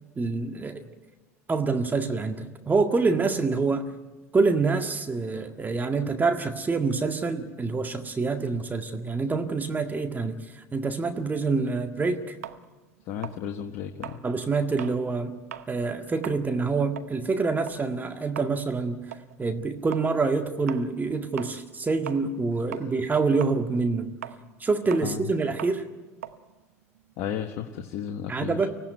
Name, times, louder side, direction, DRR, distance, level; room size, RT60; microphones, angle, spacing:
voice 1, 0.2-0.8 1.5-3.9 4.3-12.4 14.2-15.3 15.7-24.1 24.6-25.9 28.3-28.7, right 4 dB, 20° right, 5 dB, 1.9 m, -26 dB
sound 1, 12.4-15.0 15.4-15.7 16.1-22.5 22.7-27.5, right 10 dB, 85° right, 1.0 m, -42 dB
voice 2, 13.1-14.2 25.0-25.3 27.2-28.6, left 9 dB, 60° left, 4 dB, 1.5 m, -33 dB
24.5 x 17.0 x 9.3 m, 1.2 s
hypercardioid pair, 75°, 8 cm